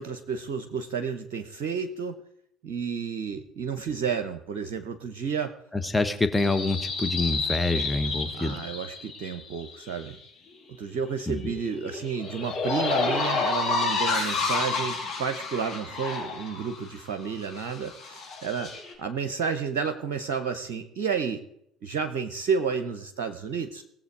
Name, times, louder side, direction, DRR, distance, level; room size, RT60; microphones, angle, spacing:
voice 1, 0.0-2.2 2.6-5.5 8.4-10.2 10.8-18.7 19.0-21.4 21.8-23.8, right 6 dB, 65° right, 7 dB, 0.9 m, -31 dB
voice 2, 5.7-8.7 11.3-11.4, left 2 dB, 10° left, 8 dB, 1.2 m, -26 dB
sound 1, 6.3-10.1 11.2-16.9 17.3-18.9, left 4 dB, 65° left, 4.9 m, -30 dB
19.0 x 7.4 x 4.8 m, 0.73 s
figure-of-eight pair, 55°, 0 cm